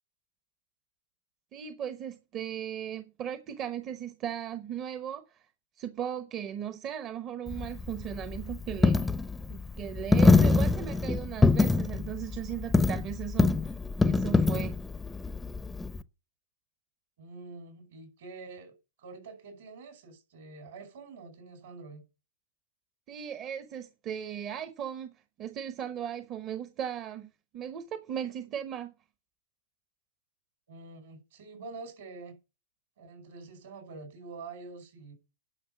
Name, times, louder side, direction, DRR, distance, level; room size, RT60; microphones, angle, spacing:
voice 1, 1.5-5.5 5.8-9.1 9.5-13.7 14.0-14.8 23.1-25.1 25.4-27.3 27.5-28.9, right 9 dB, 35° right, 0.9 m, -37 dB
Coin (dropping), 7.5-16.0, left 3 dB, 10° left, 0.6 m, -25 dB
voice 2, 17.2-22.0 30.7-32.4 33.0-35.1, right 3 dB, 70° right, 5.3 m, -46 dB
11.0 x 5.6 x 6.9 m
hypercardioid pair, 115°, 0 cm